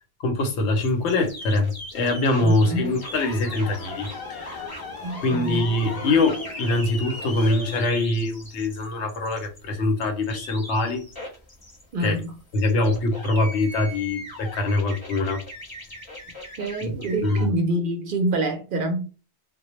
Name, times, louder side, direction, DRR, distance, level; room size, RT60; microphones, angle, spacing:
voice 1, 0.2-4.7 5.2-11.1 12.0-12.2 12.5-15.4 16.8-16.9 17.2-17.5, left 2 dB, 90° left, 1.0 m, -23 dB
sound 1, 0.8-17.4, left 1 dB, 20° left, 0.8 m, -39 dB
voice 2, 2.4-2.9 5.0-5.7 11.9-12.3 16.6-19.1, right 1 dB, 60° right, 0.6 m, -26 dB
sound 2, 2.6-7.9, left 3 dB, 50° left, 0.5 m, -40 dB
2.2 x 2.0 x 2.9 m
omnidirectional pair, 1.1 m